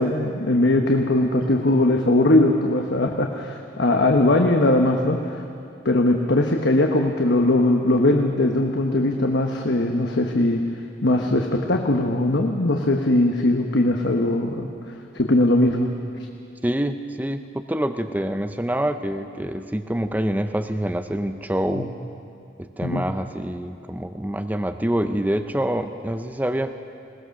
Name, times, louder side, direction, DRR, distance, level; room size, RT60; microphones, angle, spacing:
voice 1, 0.0-5.4 5.8-10.6 11.0-14.7 15.1-15.9 21.7-21.9 22.8-23.1, left 1 dB, 70° left, 2 dB, 1.1 m, -20 dB
voice 2, 16.6-21.9 22.6-26.7, right 1 dB, 10° right, 7 dB, 0.5 m, -26 dB
21.0 x 19.0 x 6.5 m, 2.5 s
head